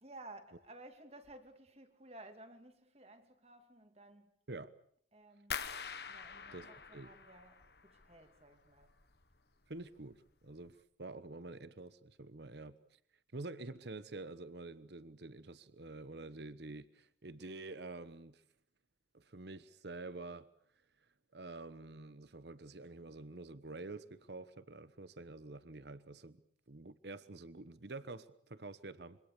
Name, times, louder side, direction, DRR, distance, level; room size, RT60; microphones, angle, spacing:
voice 1, 0.0-4.4 5.1-5.6 6.1-8.9, right 2 dB, 35° right, 2.6 m, -56 dB
sound 1, 5.5-8.4 8.7-9.4 9.7-10.1 10.6-10.7, left 6 dB, 60° left, 1.5 m, -45 dB
voice 2, 6.5-7.1 9.7-12.8 13.3-18.4 19.1-20.5 21.3-26.4 26.7-29.2, right 2 dB, 65° right, 1.1 m, -48 dB
26.5 x 25.0 x 6.9 m
head